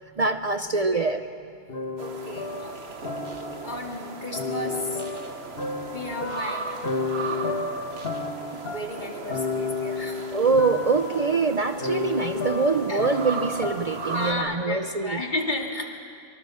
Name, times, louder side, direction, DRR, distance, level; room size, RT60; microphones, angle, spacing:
voice 1, 0.2-1.2 10.0-10.1 10.3-15.2, right 4 dB, 40° right, 8 dB, 0.8 m, -24 dB
sound 1, 1.7-3.9 4.3-14.1, left 3 dB, 65° left, 1.8 m, -32 dB
voice 2, 2.0-2.8 3.6-5.1 5.9-6.7 8.6-10.3 12.9-13.1 14.1-15.9, left 2 dB, 50° left, 1 dB, 2.6 m, -33 dB
sound 2, 2.0-14.3, right 4 dB, 80° right, 1.6 m, -37 dB
24.5 x 24.5 x 7.1 m, 2.2 s
omnidirectional pair, 1.0 m